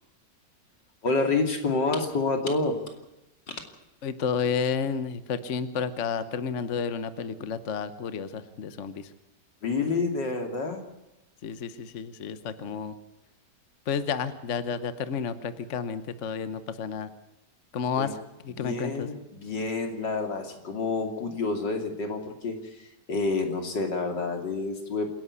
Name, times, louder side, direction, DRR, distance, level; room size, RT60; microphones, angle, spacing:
voice 1, 1.0-2.8 9.6-10.8 18.0-18.1 18.6-25.1, left 3 dB, 80° left, 5 dB, 3.4 m, -28 dB
voice 2, 4.0-9.1 11.4-12.9 13.9-17.1 17.7-19.1, left 6 dB, 50° left, 12 dB, 1.2 m, -31 dB
27.0 x 11.0 x 9.7 m, 0.93 s
omnidirectional pair, 1.9 m